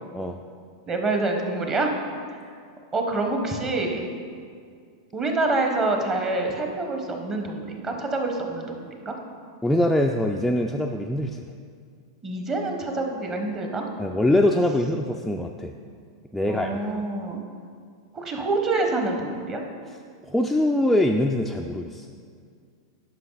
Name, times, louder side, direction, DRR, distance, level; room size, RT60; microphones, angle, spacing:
voice 1, 0.9-1.9 2.9-4.1 5.1-9.2 12.2-13.8 16.5-17.4 18.1-19.6, right 2 dB, 25° right, 3 dB, 1.1 m, -26 dB
voice 2, 9.6-11.5 14.0-15.7 16.3-17.0 20.2-22.1, left 1 dB, 5° left, 1 dB, 0.3 m, -23 dB
9.6 x 5.7 x 4.0 m, 2.2 s
hypercardioid pair, 120°, 2 cm